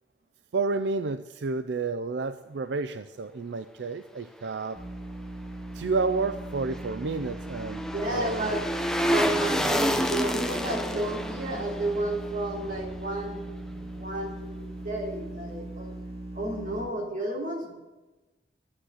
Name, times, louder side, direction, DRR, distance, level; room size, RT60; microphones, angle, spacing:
voice 1, 0.5-4.8 5.7-7.8 8.1-8.6, right 3 dB, 80° right, 11 dB, 0.5 m, -30 dB
sound 1, 4.8-16.9, right 1 dB, 35° right, 2.3 m, -39 dB
sound 2, 6.3-13.5 13.8-13.9, equal, 5° left, 0.8 m, -30 dB
voice 2, 7.8-8.6 9.0-13.3 13.9-16.0 16.3-17.7, right 1 dB, 50° right, -1 dB, 3.4 m, -32 dB
12.0 x 8.8 x 7.8 m, 1.1 s
head